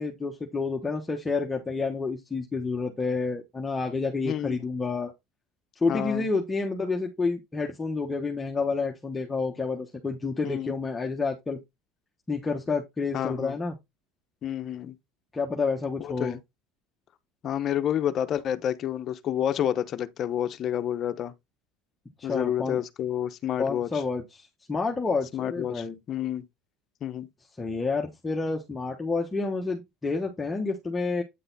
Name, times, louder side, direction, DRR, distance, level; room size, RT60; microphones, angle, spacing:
voice 1, 0.0-5.1 5.8-11.6 12.3-13.7 15.3-16.4 22.2-22.8 23.6-25.9 27.6-31.2, left 4 dB, 15° left, 1.2 m, -29 dB
voice 2, 4.2-4.6 5.9-6.2 10.4-10.7 13.1-13.6 14.4-15.0 16.0-16.4 17.4-21.3 22.2-23.9 25.3-26.4 27.0-27.3, left 10 dB, 45° left, 0.9 m, -29 dB
9.2 x 3.9 x 4.0 m
supercardioid pair, 110°, 0 cm